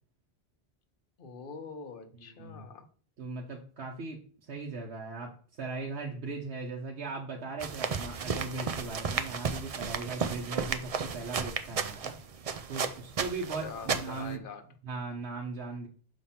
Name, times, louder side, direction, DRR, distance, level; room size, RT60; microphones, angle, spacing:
voice 1, 1.2-2.9 13.6-14.7, left 5 dB, 55° left, 1.0 m, -44 dB
voice 2, 3.2-4.2 4.5-12.1 12.4-14.4 14.8-15.9, right 3 dB, 85° right, 1.2 m, -38 dB
sound 1, 7.6-14.3, right 6 dB, 45° right, 0.5 m, -34 dB
7.0 x 3.2 x 5.7 m
omnidirectional pair, 1.1 m